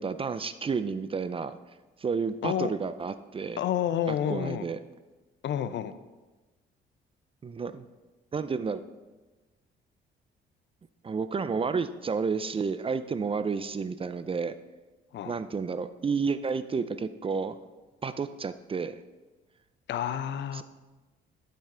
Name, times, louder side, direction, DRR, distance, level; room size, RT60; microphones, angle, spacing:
voice 1, 0.0-1.6 2.0-3.6 4.1-4.8 7.4-7.9 8.3-8.8 11.0-14.5 15.3-17.6 18.0-19.0 20.5-20.6, right 5 dB, 30° right, 12 dB, 0.4 m, -31 dB
voice 2, 2.4-2.7 3.6-4.7 5.4-5.9 15.1-15.4 19.9-20.6, left 10 dB, 65° left, 13 dB, 0.5 m, -29 dB
12.0 x 5.6 x 3.8 m, 1.2 s
cardioid pair, 90°, 20 cm